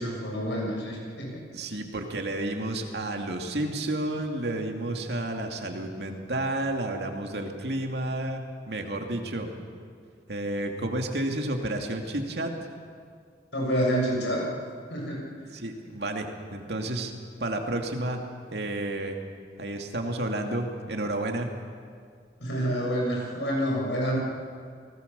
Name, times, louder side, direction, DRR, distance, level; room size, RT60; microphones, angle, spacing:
voice 1, 0.0-1.4 13.5-14.4 14.9-15.3 22.4-24.2, equal, 90° left, -2 dB, 7.0 m, -28 dB
voice 2, 1.5-9.5 10.3-12.5 15.5-17.1 17.4-18.2 18.5-19.2 19.6-21.5, right 1 dB, 65° right, 3 dB, 2.6 m, -31 dB
29.0 x 19.5 x 7.0 m, 2.1 s
head